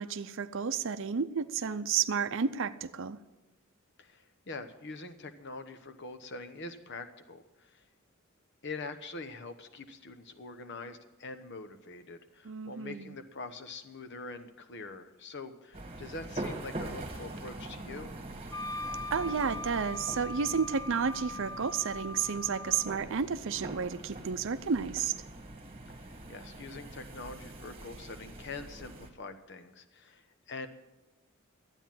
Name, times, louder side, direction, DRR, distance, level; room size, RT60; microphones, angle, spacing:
voice 1, 0.0-3.2 12.4-13.2 19.1-25.1, right 6 dB, 65° right, 12 dB, 0.6 m, -31 dB
voice 2, 4.0-7.8 8.6-18.2 25.9-30.7, left 3 dB, 55° left, 9 dB, 1.0 m, -44 dB
sound 1, 15.7-29.1, right 1 dB, 30° right, 1.5 m, -43 dB
Wind instrument woodwind instrument, 18.5-23.0, left 1 dB, 20° left, 0.4 m, -40 dB
12.5 x 9.0 x 7.5 m, 1.1 s
head